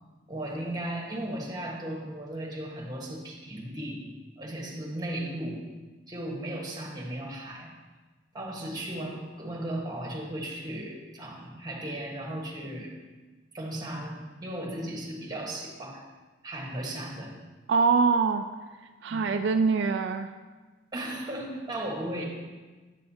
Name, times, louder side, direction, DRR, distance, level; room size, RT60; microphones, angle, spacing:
voice 1, 0.3-4.0 4.4-5.6 6.1-7.7 8.3-12.9 13.5-16.0 16.4-17.3 19.1-19.4 20.9-22.2, right 1 dB, 20° right, -2 dB, 1.4 m, -36 dB
voice 2, 17.7-18.4 19.0-20.3, right 5 dB, 75° right, 7 dB, 0.3 m, -24 dB
9.0 x 6.5 x 2.8 m, 1.3 s
head